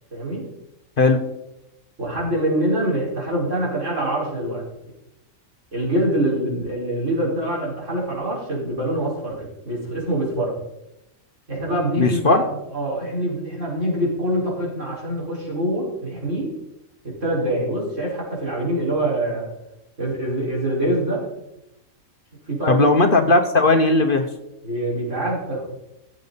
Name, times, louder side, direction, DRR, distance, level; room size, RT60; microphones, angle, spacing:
voice 1, 0.1-0.5 2.0-4.6 5.7-10.5 11.5-12.4 12.7-16.5 17.0-19.5 20.0-21.2 22.5-22.8 24.6-25.6, right 1 dB, 70° right, -5 dB, 5.3 m, -24 dB
voice 2, 12.0-12.4 22.7-24.3, left 3 dB, 45° left, 6 dB, 1.1 m, -17 dB
17.0 x 7.7 x 4.1 m, 0.89 s
omnidirectional pair, 1.3 m